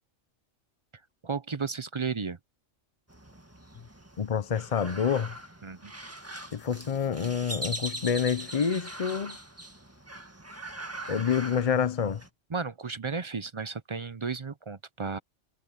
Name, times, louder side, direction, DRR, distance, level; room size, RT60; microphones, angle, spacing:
voice 1, 1.2-2.4 5.6-5.9 12.5-15.2, right 5 dB, 35° right, 0.5 m, -33 dB
sound 1, 3.1-12.3, right 1 dB, 10° right, 1.8 m, -41 dB
voice 2, 4.2-5.3 6.5-9.4 11.1-12.2, left 7 dB, 40° left, 0.6 m, -27 dB
omnidirectional pair, 1.3 m